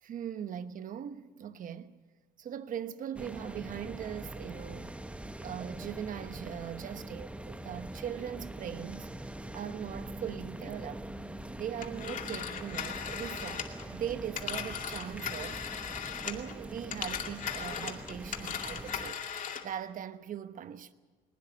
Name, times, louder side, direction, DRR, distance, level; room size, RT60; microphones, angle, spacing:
voice 1, 0.0-2.0 2.4-5.0 5.4-9.1 9.5-11.0 11.6-15.6 16.2-19.2 19.6-20.9, right 9 dB, 55° right, 1.1 m, -40 dB
sound 1, 3.1-19.1, right 1 dB, 5° right, 0.9 m, -43 dB
Telephone, 11.8-16.5 16.8-19.7, left 8 dB, 50° left, 2.3 m, -38 dB
21.0 x 19.5 x 7.8 m
cardioid pair, 110°, 17 cm